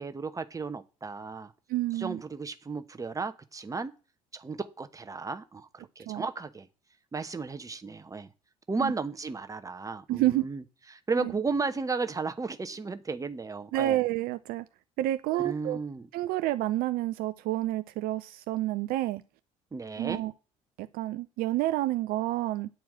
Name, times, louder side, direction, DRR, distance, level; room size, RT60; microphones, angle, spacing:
voice 1, 0.0-1.5 2.0-3.9 4.3-6.7 7.1-8.3 8.7-10.6 10.9-14.0 15.4-16.1 19.7-20.2, right 4 dB, 20° right, 1.0 m, -34 dB
voice 2, 1.7-2.2 6.1-6.2 8.8-8.9 10.1-10.5 11.2-11.3 13.7-14.7 15.0-15.8 16.1-19.2 20.0-20.3 20.8-22.7, right 15 dB, 55° right, 0.5 m, -29 dB
8.9 x 4.6 x 7.6 m
figure-of-eight pair, 55°, 18 cm